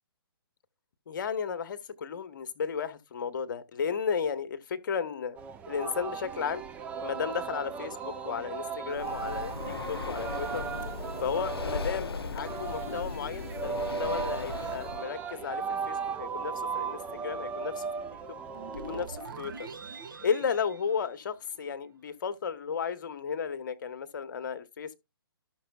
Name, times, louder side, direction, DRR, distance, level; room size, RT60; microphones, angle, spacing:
voice 1, 1.1-5.4 5.7-6.6 7.0-10.7 11.2-17.8 18.9-19.7 20.2-25.0, left 6 dB, 55° left, 1.1 m, -34 dB
Singing, 5.4-19.1, right 6 dB, 10° right, 0.4 m, -36 dB
Breathing, 8.9-15.0, left 5 dB, 75° left, 0.5 m, -37 dB
sound 1, 18.5-21.8, right 4 dB, 55° right, 1.4 m, -44 dB
13.0 x 6.2 x 2.2 m
figure-of-eight pair, 135°, 13 cm